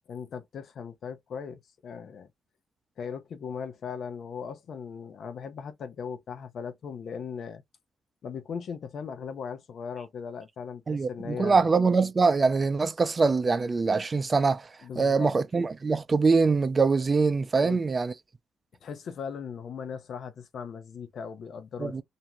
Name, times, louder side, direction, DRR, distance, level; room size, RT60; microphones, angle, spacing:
voice 1, 0.1-2.3 3.0-7.6 8.2-11.7 14.8-15.4 17.6-17.8 18.8-22.0, left 6 dB, 65° left, 0.6 m, -38 dB
voice 2, 10.9-14.7 15.0-18.1 21.8-22.0, right 4 dB, 40° right, 0.4 m, -23 dB
2.6 x 2.2 x 2.9 m
hypercardioid pair, 45°, 0 cm